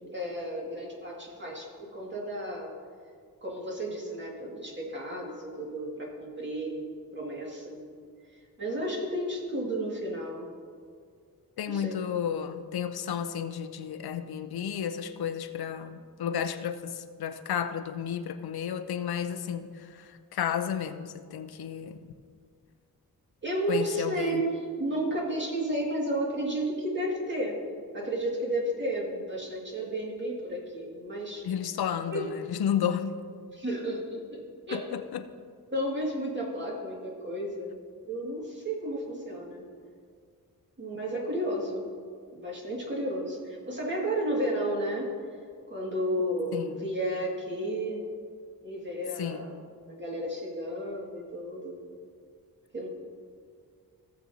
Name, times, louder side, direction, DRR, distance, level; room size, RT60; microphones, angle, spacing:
voice 1, 0.0-2.7 3.4-7.9 8.3-10.5 11.7-12.0 23.4-27.6 27.9-31.5 32.1-32.2 33.5-34.8 35.7-37.8 38.1-39.6 40.8-41.9 42.3-45.1 45.7-48.1 48.6-49.5 49.9-51.8 52.7-52.9, right 1 dB, 30° right, -2 dB, 2.1 m, -32 dB
voice 2, 11.6-22.0 23.7-24.4 31.4-33.2 34.7-35.2 46.5-46.8 49.2-49.5, left 8 dB, 85° left, 10 dB, 0.6 m, -32 dB
16.5 x 7.3 x 2.8 m, 2.1 s
wide cardioid pair, 110°, 37 cm